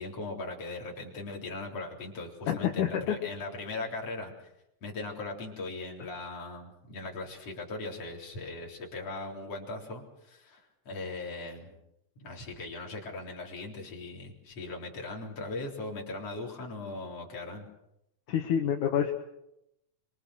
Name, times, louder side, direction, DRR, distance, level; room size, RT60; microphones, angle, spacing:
voice 1, 0.0-4.5 4.8-11.8 12.2-17.7, left 3 dB, 50° left, -1 dB, 4.9 m, -39 dB
voice 2, 2.5-3.2 18.3-19.1, left 9 dB, 75° left, 2 dB, 3.0 m, -27 dB
25.5 x 24.5 x 6.4 m, 0.84 s
omnidirectional pair, 3.6 m